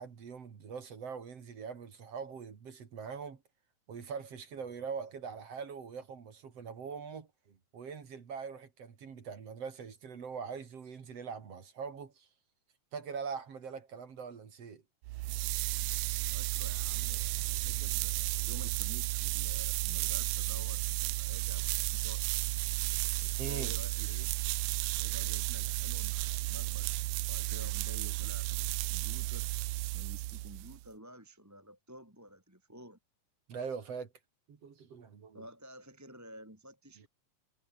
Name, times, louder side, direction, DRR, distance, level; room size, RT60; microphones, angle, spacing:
voice 1, 0.0-3.4 3.9-12.3 12.9-14.8 22.9-23.7 33.5-34.1 34.5-35.5 37.0-37.1, right 6 dB, 45° right, 3.3 m, -43 dB
sound 1, 15.0-30.8, right 20 dB, 80° right, 1.9 m, -33 dB
voice 2, 16.3-22.2 23.2-24.3 25.0-29.5 29.9-33.0 35.3-37.1, equal, 5° right, 1.9 m, -52 dB
omnidirectional pair, 4.0 m